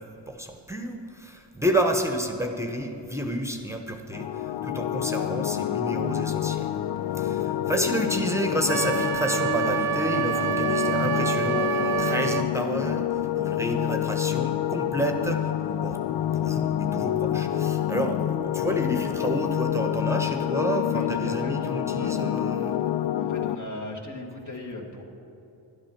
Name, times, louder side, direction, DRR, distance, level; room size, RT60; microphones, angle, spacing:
voice 1, 0.0-6.8 7.1-15.5 15.8-16.0 16.3-22.8, right 1 dB, 5° right, 4 dB, 1.0 m, -30 dB
sound 1, 4.1-23.5, left 11 dB, 70° left, 0.5 m, -27 dB
Wind instrument woodwind instrument, 8.7-12.5, right 10 dB, 55° right, 0.6 m, -27 dB
voice 2, 20.9-21.7 21.9-22.1 23.1-25.0, left 2 dB, 40° left, 0 dB, 1.9 m, -37 dB
11.5 x 8.8 x 5.9 m, 2.9 s
cardioid pair, 55°, 44 cm